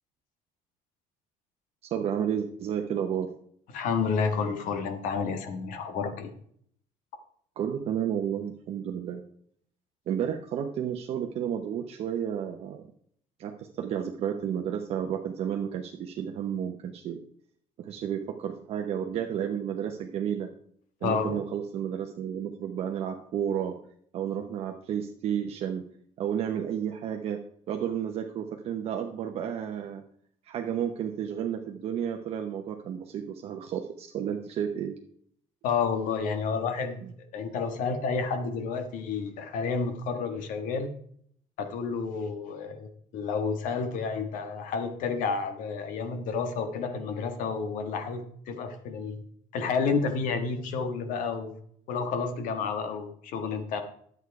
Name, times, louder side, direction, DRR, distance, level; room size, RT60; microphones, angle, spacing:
voice 1, 1.8-3.3 7.6-9.2 10.1-12.9 13.4-17.2 17.8-20.5 21.0-23.8 24.1-25.8 26.2-27.4 27.7-30.0 30.4-34.9 37.0-37.1, right 9 dB, 50° right, 3 dB, 0.8 m, -32 dB
voice 2, 3.7-6.3 21.0-21.4 35.6-37.0 37.3-40.9 41.6-49.2 49.5-51.5 51.9-53.8, left 5 dB, 75° left, 7 dB, 1.6 m, -30 dB
10.5 x 8.1 x 4.7 m, 0.64 s
cardioid pair, 180°, 14 cm